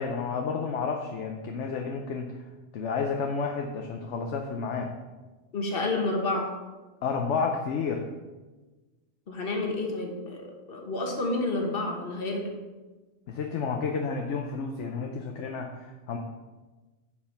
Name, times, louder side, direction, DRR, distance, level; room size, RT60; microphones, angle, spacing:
voice 1, 0.0-2.4 2.7-4.9 7.0-8.0 13.3-16.2, left 5 dB, 65° left, 3 dB, 1.0 m, -31 dB
voice 2, 5.5-6.5 9.3-12.5, left 2 dB, 45° left, 2 dB, 1.5 m, -30 dB
7.2 x 5.2 x 6.4 m, 1.2 s
omnidirectional pair, 1.3 m